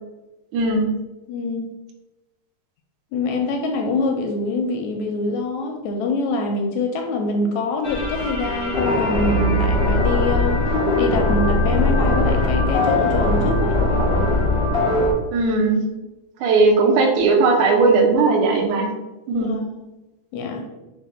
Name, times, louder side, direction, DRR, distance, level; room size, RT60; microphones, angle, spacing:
voice 1, 0.5-0.9 15.3-15.8 16.4-18.9 19.3-19.6, right 3 dB, 80° right, 0 dB, 2.1 m, -17 dB
voice 2, 1.3-1.7 3.1-10.6 11.0-13.8 19.4-20.0 20.3-20.6, left 2 dB, 80° left, 2 dB, 1.7 m, -24 dB
sound 1, 7.8-15.1, left 2 dB, 55° left, 0.7 m, -20 dB
5.8 x 2.2 x 4.1 m, 1.1 s
omnidirectional pair, 3.5 m